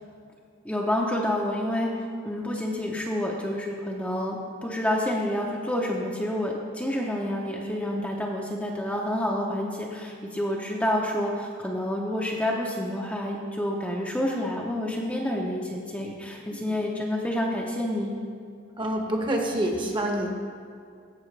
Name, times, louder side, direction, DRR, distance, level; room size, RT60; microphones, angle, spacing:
voice 1, 0.6-18.1, left 1 dB, 5° left, -2 dB, 0.7 m, -28 dB
voice 2, 18.8-20.3, right 1 dB, 25° right, 1 dB, 1.0 m, -26 dB
16.0 x 5.7 x 3.2 m, 2.3 s
head